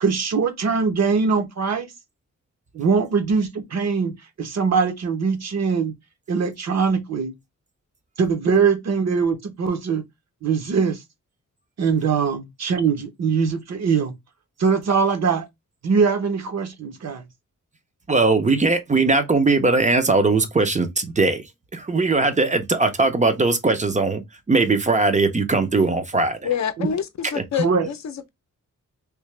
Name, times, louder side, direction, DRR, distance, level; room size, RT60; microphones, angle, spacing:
voice 1, 0.0-1.9 2.7-5.9 6.3-7.3 8.2-10.0 10.4-11.0 11.8-14.2 14.6-15.5 15.8-17.2 26.8-26.9 27.6-27.9, right 5 dB, 55° right, 0.8 m, -22 dB
voice 2, 18.1-26.5 27.3-27.4, right 3 dB, 25° right, 0.5 m, -20 dB
voice 3, 26.4-28.3, left 8 dB, 55° left, 0.6 m, -27 dB
3.3 x 2.8 x 3.1 m
wide cardioid pair, 165°, 32 cm